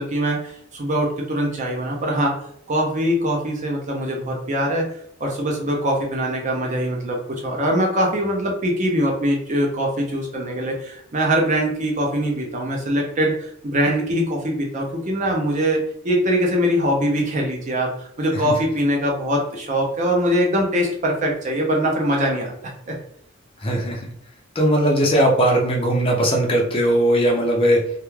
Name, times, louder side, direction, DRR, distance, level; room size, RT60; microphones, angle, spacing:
voice 1, 0.0-2.3 2.7-4.9 5.2-22.5 22.9-23.0, equal, 35° right, 0 dB, 0.5 m, -22 dB
voice 2, 23.6-24.1 24.6-27.8, right 1 dB, 25° left, -1 dB, 0.5 m, -19 dB
2.3 x 2.2 x 3.1 m, 0.69 s
head